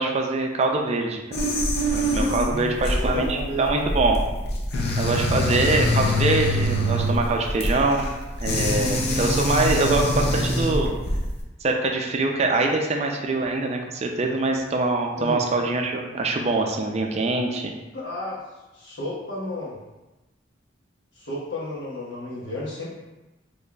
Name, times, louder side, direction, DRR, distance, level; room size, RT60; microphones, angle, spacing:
voice 1, 0.0-1.4 1.9-4.2 5.0-8.1 8.4-10.9 11.6-17.7, right 3 dB, 35° right, 2 dB, 0.4 m, -24 dB
sound 1, 1.3-11.4, left 1 dB, 60° left, 0.6 m, -24 dB
voice 2, 2.4-3.9 15.2-15.4 17.9-18.4 18.7-19.8 21.1-22.9, left 1 dB, 80° left, -6 dB, 1.2 m, -32 dB
4.0 x 3.0 x 2.3 m, 1.1 s
head